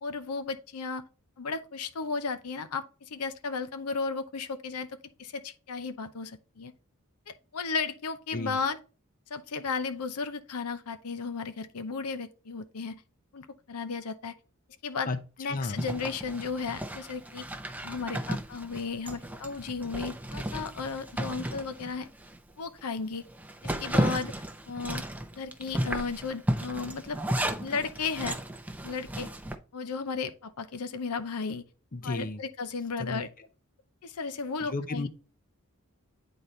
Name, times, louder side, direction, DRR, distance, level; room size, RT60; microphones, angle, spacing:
voice 1, 0.0-1.0 1.4-6.7 7.3-8.8 9.3-13.0 13.3-14.3 14.8-15.1 15.4-17.5 17.8-22.1 22.6-23.2 23.6-24.3 24.7-25.0 25.4-27.2 27.6-28.4 28.8-29.3 29.7-31.6 32.0-33.3 34.0-35.1, left 4 dB, 80° left, 0.7 m, -34 dB
Zipper (clothing), 15.8-22.4 22.8-22.9 23.3-29.6, right 1 dB, 5° right, 0.6 m, -34 dB
voice 2, 31.9-32.4 33.0-33.2 34.7-35.1, left 2 dB, 40° left, 0.6 m, -32 dB
8.9 x 4.1 x 3.2 m
head